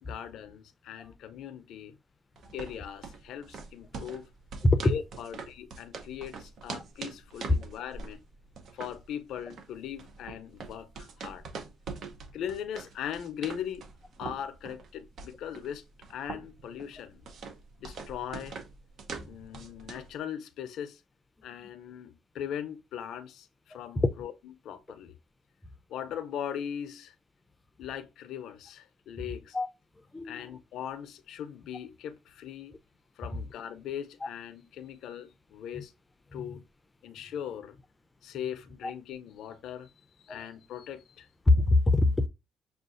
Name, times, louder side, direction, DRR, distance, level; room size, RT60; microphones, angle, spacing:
voice 1, 0.0-2.0 2.5-4.3 4.8-8.2 8.7-11.4 12.3-13.8 14.2-15.8 16.1-17.2 17.8-18.6 19.3-21.0 21.4-24.3 24.6-25.2 25.9-27.1 27.8-29.6 30.2-32.7 33.2-35.9 36.3-36.6 37.0-37.8 38.2-39.9 40.2-41.3, left 9 dB, 80° left, 0.5 m, -39 dB
sound 1, 2.4-20.2, right 5 dB, 70° right, 0.7 m, -44 dB
voice 2, 4.6-4.9 19.2-19.3 29.5-29.7 30.1-30.4 34.2-34.3 35.7-35.8 36.3-36.5 40.3-40.5 41.5-42.3, left 2 dB, 20° left, 0.5 m, -24 dB
6.3 x 2.4 x 2.5 m
cardioid pair, 90°, 0 cm